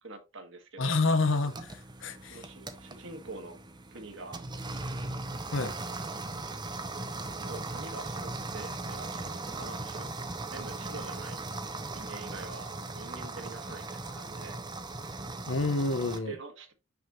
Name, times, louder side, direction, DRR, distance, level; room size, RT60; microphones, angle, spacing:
voice 1, 0.0-1.0 2.3-3.6 3.9-4.4 7.4-10.1 10.4-11.4 11.9-14.6 16.3-16.7, right 3 dB, 60° right, 1.5 m, -45 dB
voice 2, 0.8-2.4 5.5-5.7 15.5-16.3, left 3 dB, 65° left, 1.0 m, -28 dB
sound 1, 1.3-16.2, right 2 dB, 20° right, 0.7 m, -39 dB
5.9 x 5.5 x 2.9 m
head